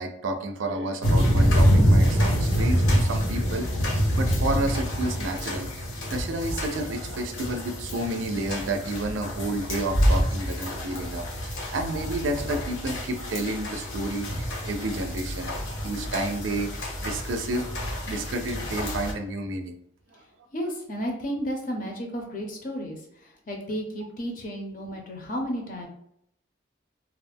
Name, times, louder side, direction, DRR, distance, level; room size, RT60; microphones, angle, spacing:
voice 1, 0.0-5.7 6.1-19.8, right 2 dB, 75° right, 7 dB, 0.4 m, -31 dB
sound 1, 1.0-19.1, equal, 80° left, 0.7 m, -26 dB
voice 2, 15.6-15.9 18.7-18.8 20.5-25.9, equal, 40° left, 1 dB, 0.5 m, -33 dB
2.4 x 2.1 x 3.3 m, 0.73 s
head